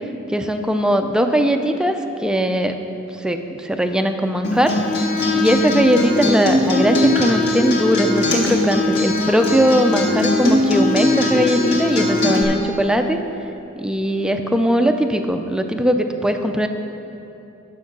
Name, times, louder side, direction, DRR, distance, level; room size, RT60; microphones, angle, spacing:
voice 1, 0.3-2.8 3.2-4.8 5.3-13.2 13.8-16.7, equal, 5° right, 6 dB, 0.4 m, -19 dB
Acoustic guitar, 4.4-12.4, left 2 dB, 55° left, 1.8 m, -20 dB
9.7 x 6.7 x 6.1 m, 2.8 s
head